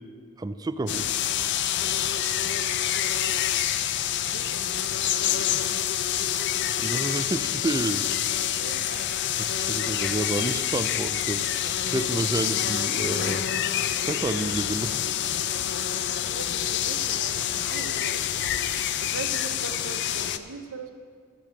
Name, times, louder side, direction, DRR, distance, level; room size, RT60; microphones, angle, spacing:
voice 1, 0.4-1.1 6.8-8.4 9.4-11.4 11.8-13.4 14.0-15.2, right 2 dB, 20° right, 11 dB, 0.3 m, -30 dB
sound 1, 0.9-20.4, left 10 dB, 60° left, 0.4 m, -27 dB
voice 2, 3.7-5.5 8.5-9.1 15.9-18.3 19.0-20.9, right 3 dB, 85° right, 8 dB, 0.8 m, -41 dB
14.5 x 5.1 x 7.5 m, 2.1 s
head